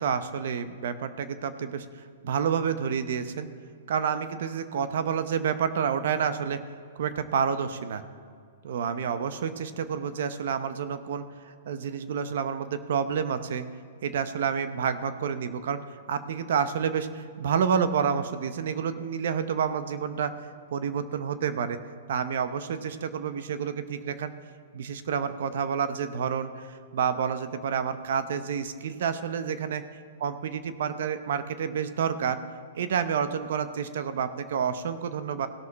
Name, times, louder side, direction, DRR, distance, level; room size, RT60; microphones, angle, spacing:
voice 1, 0.0-1.9 2.2-3.5 3.9-6.6 7.0-8.0 8.6-11.2 11.7-13.7 14.0-15.8 16.1-20.3 20.7-21.8 22.1-24.3 24.7-29.8 30.2-32.4 32.7-35.5, right 7 dB, 70° right, 11 dB, 0.8 m, -29 dB
17.0 x 6.5 x 4.2 m, 2.1 s
hypercardioid pair, 135°, 0 cm